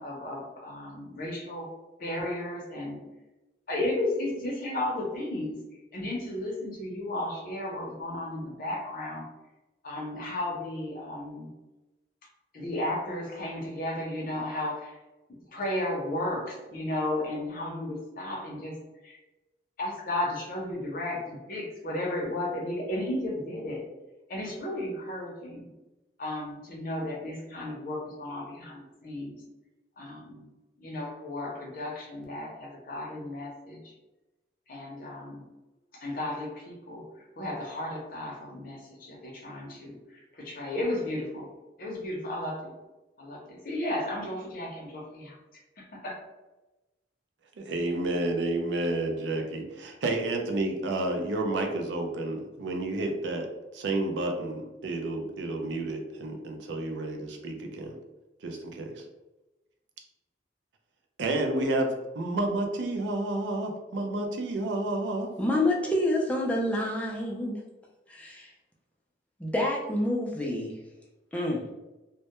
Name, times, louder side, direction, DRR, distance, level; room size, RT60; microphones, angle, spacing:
voice 1, 0.0-1.7 2.0-3.0 3.7-5.6 5.9-9.2 9.8-11.5 12.5-15.0 15.5-18.8 19.0-19.2 19.8-23.8 24.3-25.7 26.2-29.4 30.0-30.5 30.8-33.9 34.7-35.4 35.9-41.5 41.8-42.7 43.2-46.2, left 1 dB, 50° left, -1 dB, 0.6 m, -34 dB
voice 2, 47.6-53.5 53.7-57.9 58.4-59.0 61.2-65.3, right 2 dB, 85° right, 3 dB, 0.4 m, -30 dB
voice 3, 65.4-67.6 68.1-68.5 69.4-70.7 71.3-71.6, left 1 dB, 10° left, -2 dB, 0.3 m, -27 dB
2.1 x 2.1 x 2.8 m, 1.1 s
head